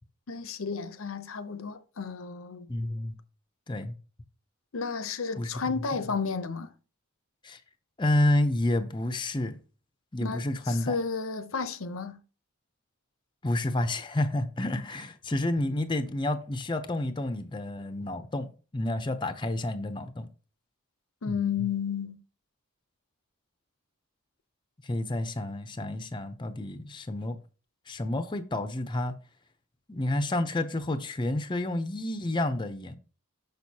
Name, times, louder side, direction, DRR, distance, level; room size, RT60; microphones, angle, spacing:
voice 1, 0.3-2.7 4.7-6.7 10.2-12.2 21.2-22.2, left 5 dB, 70° left, 0.7 m, -32 dB
voice 2, 2.7-3.1 3.7-3.9 5.4-5.5 7.4-7.6 8.0-9.6 10.1-11.0 13.4-20.3 21.3-21.6 24.8-27.4 27.9-29.1 29.9-33.0, left 1 dB, 20° left, 0.6 m, -29 dB
6.6 x 6.2 x 2.8 m
head